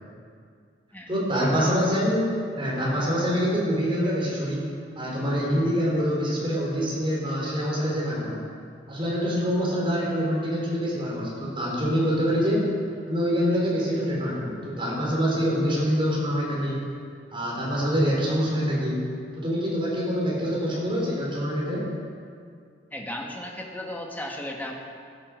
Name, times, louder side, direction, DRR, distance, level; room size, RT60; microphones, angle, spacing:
voice 1, 1.1-4.7 5.0-8.4 8.9-12.7 13.1-16.8 17.3-19.0 19.4-21.8, equal, 30° right, -5 dB, 4.6 m, -25 dB
voice 2, 22.9-24.7, left 1 dB, 10° left, 0 dB, 1.7 m, -35 dB
16.0 x 9.9 x 6.4 m, 2.2 s
head